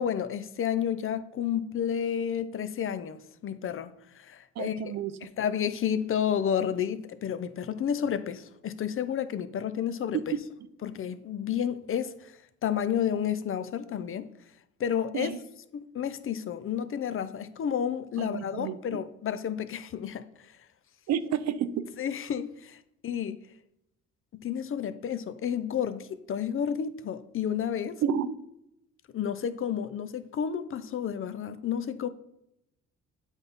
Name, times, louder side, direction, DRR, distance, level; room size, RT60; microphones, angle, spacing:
voice 1, 0.0-4.8 5.2-10.2 10.8-12.3 12.6-14.3 14.8-15.3 15.7-20.2 22.0-22.8 23.0-23.4 24.3-28.0 29.1-32.1, left 8 dB, 45° left, 0.5 m, -31 dB
voice 2, 4.6-5.3 10.1-10.4 15.1-15.4 18.2-19.0 21.1-22.0 28.0-28.3, right 8 dB, 60° right, 0.5 m, -31 dB
8.0 x 4.0 x 3.5 m
cardioid pair, 90°, 30 cm